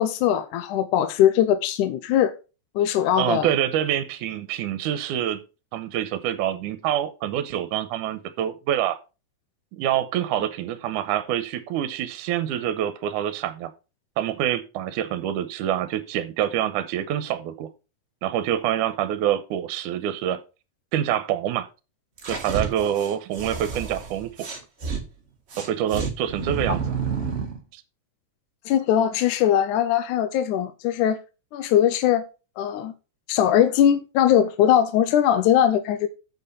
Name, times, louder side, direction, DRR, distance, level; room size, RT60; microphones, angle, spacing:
voice 1, 0.0-2.3 2.8-3.5 28.7-31.2 31.5-32.2 32.6-32.9 33.3-36.1, left 10 dB, 80° left, 2.1 m, -20 dB
voice 2, 3.2-5.4 5.7-9.0 9.7-13.7 14.2-17.7 18.2-20.4 20.9-21.7 22.3-24.5 25.6-26.9 27.7-27.8, right 11 dB, 75° right, 2.2 m, -26 dB
sound 1, 22.2-25.0 25.5-27.6, right 5 dB, 55° right, 0.7 m, -30 dB
8.1 x 6.8 x 5.3 m
omnidirectional pair, 3.7 m